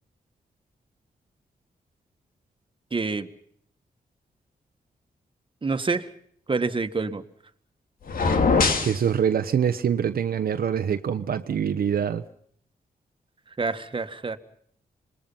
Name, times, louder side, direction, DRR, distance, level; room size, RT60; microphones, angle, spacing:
voice 1, 2.9-3.3 5.6-6.1 6.5-7.2 13.6-14.4, right 4 dB, 35° right, 1.8 m, -27 dB
sound 1, 8.1-9.0, left 4 dB, 65° left, 3.0 m, -21 dB
voice 2, 8.8-12.2, right 8 dB, 75° right, 1.1 m, -24 dB
26.5 x 21.0 x 5.7 m
cardioid pair, 75°, 16 cm